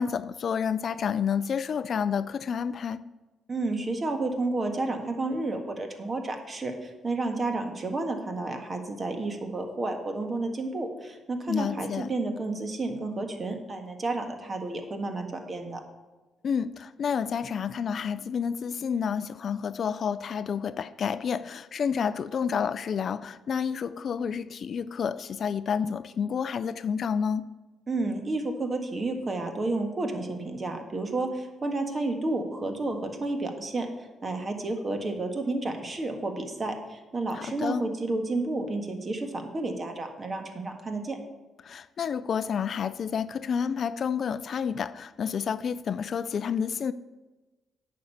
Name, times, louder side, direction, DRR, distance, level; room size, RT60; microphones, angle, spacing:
voice 1, 0.0-3.0 11.5-12.1 16.4-27.5 37.3-37.8 41.6-46.9, left 7 dB, 55° left, 0.3 m, -29 dB
voice 2, 3.5-15.8 27.9-33.9 34.2-41.2, right 2 dB, 30° right, 1.5 m, -31 dB
9.1 x 5.3 x 7.0 m
cardioid pair, 90°, 0 cm